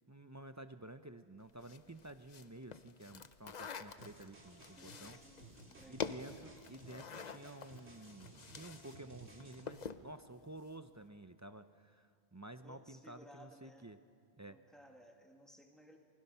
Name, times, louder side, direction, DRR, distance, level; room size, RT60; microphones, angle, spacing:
voice 1, 0.1-5.2 5.9-14.0 14.4-14.6, right 1 dB, 25° right, 10 dB, 0.4 m, -52 dB
sound 1, 1.2-6.5, equal, 60° right, 8.2 m, -76 dB
sound 2, 1.6-8.9 9.2-10.1, left 6 dB, 45° left, 0.7 m, -47 dB
sound 3, 4.0-9.6, right 2 dB, 85° right, 2.9 m, -58 dB
voice 2, 4.6-6.5 12.6-13.9 14.5-16.0, equal, ahead, 1 dB, 2.1 m, -60 dB
28.5 x 20.5 x 5.6 m, 2.2 s
omnidirectional pair, 1.1 m